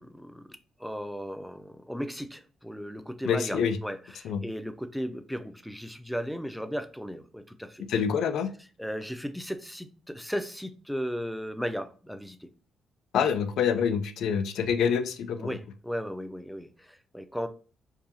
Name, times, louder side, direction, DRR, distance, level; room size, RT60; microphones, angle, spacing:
voice 1, 0.0-7.8 8.8-12.5 15.4-17.5, equal, ahead, 0.4 m, -36 dB
voice 2, 3.2-3.8 4.2-4.4 7.9-8.5 13.1-15.6, left 7 dB, 75° left, 0.4 m, -26 dB
4.7 x 2.6 x 2.6 m
cardioid pair, 90°, 0 cm